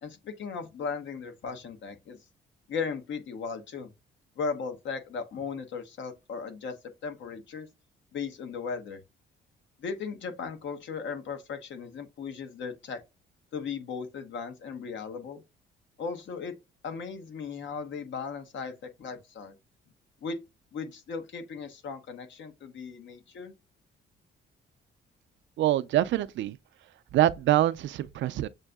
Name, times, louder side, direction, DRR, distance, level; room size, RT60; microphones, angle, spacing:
voice 1, 0.0-2.2 2.7-3.9 4.4-7.7 8.1-9.0 9.8-13.0 13.5-15.4 16.0-16.6 16.8-19.6 20.2-20.4 20.7-23.5, left 5 dB, 70° left, 1.0 m, -37 dB
voice 2, 25.6-26.6 27.1-28.5, right 13 dB, 70° right, 0.4 m, -25 dB
7.2 x 2.6 x 2.2 m
cardioid pair, 90°, 20 cm